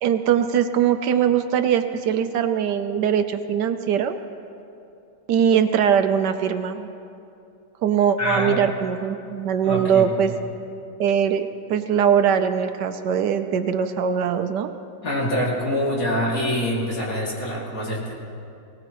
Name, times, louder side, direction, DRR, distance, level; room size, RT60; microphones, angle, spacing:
voice 1, 0.0-4.2 5.3-6.9 7.8-10.3 11.0-14.7, right 8 dB, 75° right, 8 dB, 1.2 m, -21 dB
voice 2, 8.2-8.6 9.6-10.3 15.0-18.2, equal, 50° left, -5 dB, 3.0 m, -25 dB
20.0 x 19.0 x 3.0 m, 2.7 s
omnidirectional pair, 1.9 m